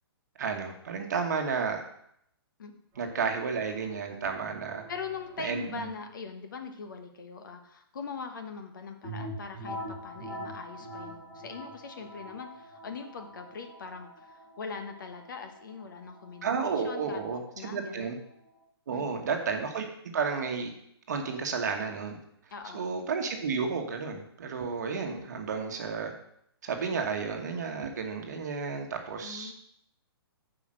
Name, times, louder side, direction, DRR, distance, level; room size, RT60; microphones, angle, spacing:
voice 1, 0.4-1.8 3.0-4.8 5.4-5.9 16.4-18.2 18.9-19.8 20.1-20.7 21.1-22.2 22.7-26.1 26.6-29.5, right 5 dB, 45° right, 4 dB, 1.3 m, -32 dB
sound 1, 2.9-4.3 4.6-6.1, right 7 dB, 15° right, 3.0 m, -53 dB
voice 2, 4.9-18.1 18.9-19.2 22.5-22.9 29.2-29.5, left 5 dB, 50° left, 6 dB, 1.2 m, -42 dB
sound 2, 9.0-18.6, equal, 10° left, 2.8 m, -44 dB
8.5 x 5.0 x 6.3 m, 0.72 s
hypercardioid pair, 180°, 13 cm